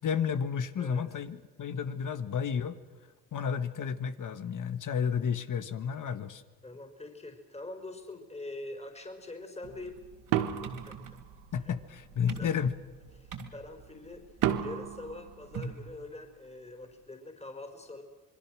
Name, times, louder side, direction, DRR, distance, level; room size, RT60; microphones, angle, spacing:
voice 1, 0.0-2.8 3.3-6.4 11.5-12.7, left 7 dB, 55° left, 11 dB, 1.6 m, -32 dB
voice 2, 6.6-10.0 10.6-11.0 11.6-11.7 12.2-12.5 13.2-14.2 14.6-18.0, left 2 dB, 15° left, 4 dB, 4.3 m, -44 dB
sound 1, 9.6-15.9, right 5 dB, 55° right, 3.3 m, -43 dB
sound 2, 10.3-11.8 14.4-16.2, right 11 dB, 90° right, 1.4 m, -33 dB
27.5 x 21.5 x 6.3 m, 1.3 s
supercardioid pair, 60°, 37 cm